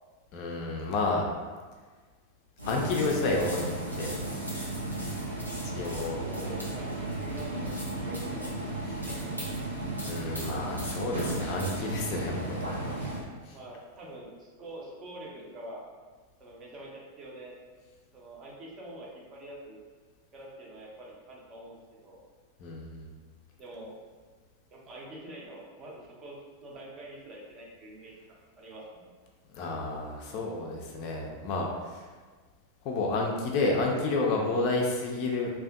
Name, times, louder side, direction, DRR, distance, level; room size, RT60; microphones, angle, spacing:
voice 1, 0.3-1.3 2.6-4.2 5.6-6.2 8.9-9.0 10.1-12.9 13.5-13.6 22.6-23.1 29.5-32.0 32.8-35.5, left 3 dB, 40° left, -1 dB, 0.3 m, -30 dB
sound 1, 2.6-13.2, right 2 dB, 90° right, 0.6 m, -34 dB
voice 2, 5.6-6.0 6.2-8.5 9.1-9.4 13.5-15.8 16.4-17.6 18.1-19.8 20.3-22.2 23.6-23.9 24.7-29.1, right 1 dB, 30° right, -3 dB, 0.6 m, -45 dB
2.4 x 2.2 x 2.3 m, 1.4 s
figure-of-eight pair, 90°, 0 cm